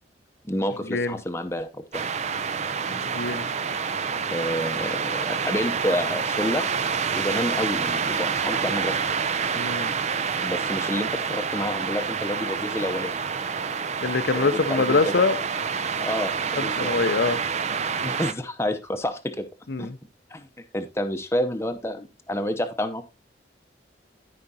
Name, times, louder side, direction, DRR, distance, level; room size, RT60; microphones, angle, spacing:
voice 1, 0.4-2.0 4.3-6.7 7.1-9.0 10.4-13.2 14.3-15.2 16.0-16.9 18.0-19.5 19.8-19.9 20.3-20.5 20.7-23.0, left 1 dB, 15° left, 0.7 m, -29 dB
sound 1, 1.9-18.3, right 6 dB, 40° right, 0.5 m, -27 dB
voice 2, 2.9-3.5 9.6-9.9 14.0-15.4 16.6-17.4 19.7-20.0, left 3 dB, 70° left, 0.7 m, -24 dB
13.5 x 5.1 x 2.8 m
head